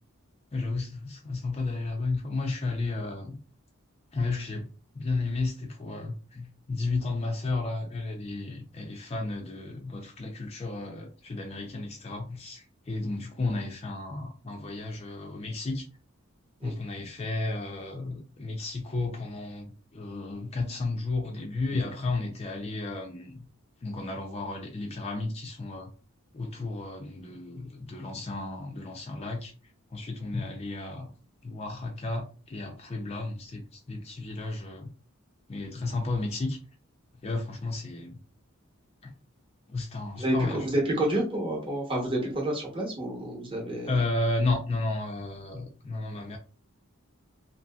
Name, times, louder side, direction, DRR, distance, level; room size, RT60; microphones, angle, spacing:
voice 1, 0.5-3.4 4.1-4.7 4.9-15.9 16.6-23.5 23.8-25.9 26.3-29.5 29.9-31.1 31.4-34.9 35.5-36.6 37.2-38.2 39.0-39.1 39.7-40.7 43.9-46.4, left 3 dB, 30° left, 0.4 m, -33 dB
voice 2, 40.2-43.9, right 1 dB, 25° right, 0.8 m, -29 dB
2.7 x 2.7 x 2.2 m
head